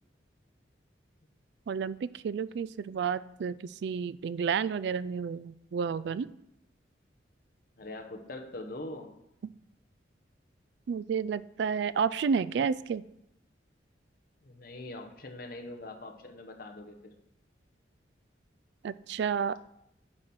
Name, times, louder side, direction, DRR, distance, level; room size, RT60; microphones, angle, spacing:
voice 1, 1.7-3.6 3.8-6.3 10.9-13.0 18.8-19.6, right 6 dB, 65° right, 17 dB, 0.3 m, -31 dB
voice 2, 7.8-9.1 14.4-17.1, left 2 dB, 50° left, 4 dB, 1.1 m, -43 dB
8.8 x 4.3 x 6.3 m, 0.81 s
head